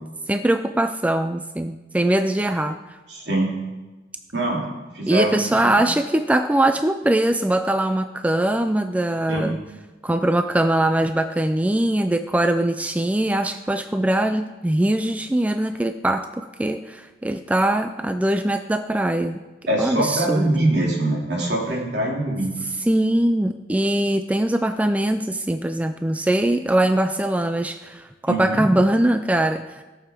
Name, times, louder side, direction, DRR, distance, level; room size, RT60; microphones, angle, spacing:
voice 1, 0.3-2.8 5.1-9.6 10.0-19.4 19.8-20.7 22.8-29.8, right 1 dB, 10° right, 8 dB, 0.3 m, -22 dB
voice 2, 3.1-3.5 4.3-5.9 9.3-9.5 19.7-22.5 28.3-28.7, right 1 dB, 70° right, -3 dB, 3.0 m, -23 dB
17.0 x 7.0 x 4.4 m, 1.2 s
head